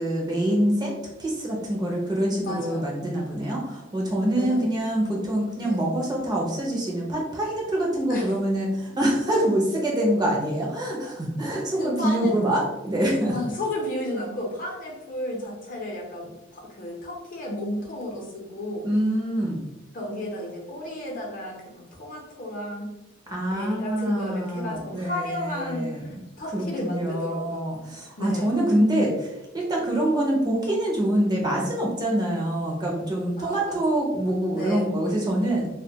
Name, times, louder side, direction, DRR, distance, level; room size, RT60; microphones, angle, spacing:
voice 1, 0.0-13.3 18.8-19.6 23.3-26.0 26.5-35.7, right 1 dB, 20° right, -2 dB, 0.5 m, -25 dB
voice 2, 2.4-2.9 4.3-4.6 5.5-5.9 8.1-8.3 11.7-12.4 13.3-18.9 19.9-22.9 23.3-27.7 28.2-28.6 33.4-33.8 34.5-34.8, left 1 dB, 45° left, -2 dB, 0.6 m, -33 dB
2.2 x 2.2 x 2.7 m, 0.94 s
head